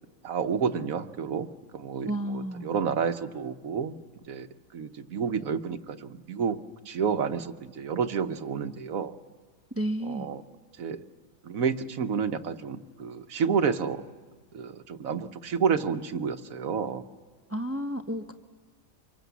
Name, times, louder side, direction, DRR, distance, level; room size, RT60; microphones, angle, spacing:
voice 1, 0.2-1.5 1.7-4.0 4.3-4.5 4.7-6.6 6.9-9.1 10.0-10.4 10.8-11.0 11.4-14.0 14.5-17.0, right 6 dB, 75° right, 1.3 m, -30 dB
voice 2, 2.0-2.7 9.7-10.3 17.5-18.3, right 1 dB, 15° right, 0.7 m, -31 dB
25.5 x 23.5 x 8.2 m
omnidirectional pair, 1.5 m